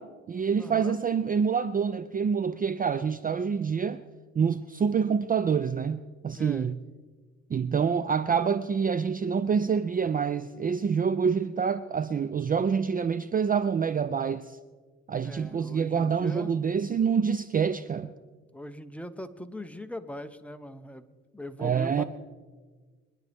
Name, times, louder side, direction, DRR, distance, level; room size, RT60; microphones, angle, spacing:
voice 1, 0.0-4.0 4.4-6.8 7.5-14.6 15.1-18.1 21.6-22.0, right 6 dB, 30° right, 0.4 m, -27 dB
voice 2, 0.6-1.0 6.3-6.7 15.2-16.5 18.5-22.0, left 1 dB, 5° left, 0.8 m, -41 dB
23.0 x 11.0 x 3.5 m
cardioid pair, 90°, 30 cm